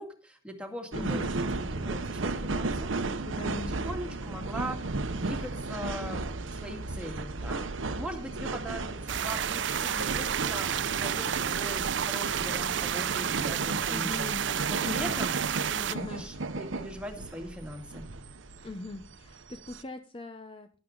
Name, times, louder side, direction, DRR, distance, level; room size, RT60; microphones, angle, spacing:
voice 1, 0.0-1.4 1.7-3.2 3.7-6.2 6.5-14.3 14.7-15.3 15.7-18.1, equal, 5° right, 3 dB, 2.1 m, -40 dB
voice 2, 0.9-1.3 3.2-3.8 13.9-14.5 14.8-15.3 15.8-16.3 18.6-20.7, left 2 dB, 25° left, 8 dB, 0.7 m, -40 dB
sound 1, 0.9-19.8, right 2 dB, 85° right, 0.9 m, -35 dB
sound 2, 9.1-15.9, right 9 dB, 70° right, 0.5 m, -30 dB
11.5 x 11.5 x 3.9 m, 0.39 s
head